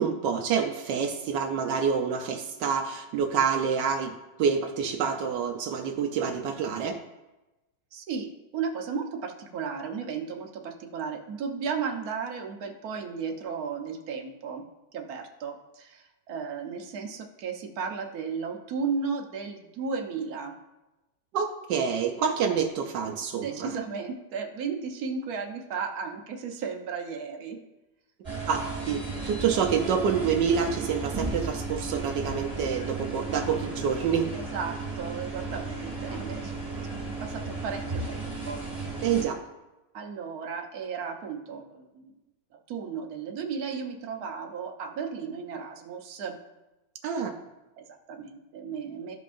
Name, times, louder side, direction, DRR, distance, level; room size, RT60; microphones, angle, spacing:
voice 1, 0.0-4.1 4.4-7.0 21.3-23.7 28.5-34.3 39.0-39.4 47.0-47.3, right 6 dB, 80° right, 4 dB, 1.3 m, -27 dB
voice 2, 7.9-20.5 23.4-27.6 34.3-36.6 36.9-38.6 39.9-42.1 42.7-46.4 47.8-49.2, right 5 dB, 65° right, 3 dB, 1.3 m, -35 dB
sound 1, 28.2-39.2, right 3 dB, 20° right, 2.2 m, -34 dB
13.5 x 5.4 x 2.5 m, 1.0 s
omnidirectional pair, 1.8 m